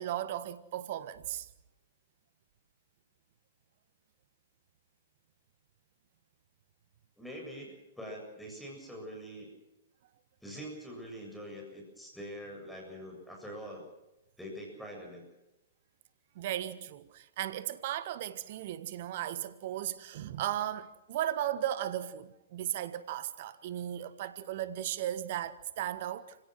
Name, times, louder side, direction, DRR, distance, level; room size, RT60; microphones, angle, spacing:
voice 1, 0.0-1.5 16.3-26.4, right 12 dB, 50° right, 1.4 m, -36 dB
voice 2, 7.2-9.5 10.4-13.8 14.4-15.2, equal, 5° left, 7.6 m, -44 dB
29.0 x 17.5 x 6.3 m
figure-of-eight pair, 110°, 0 cm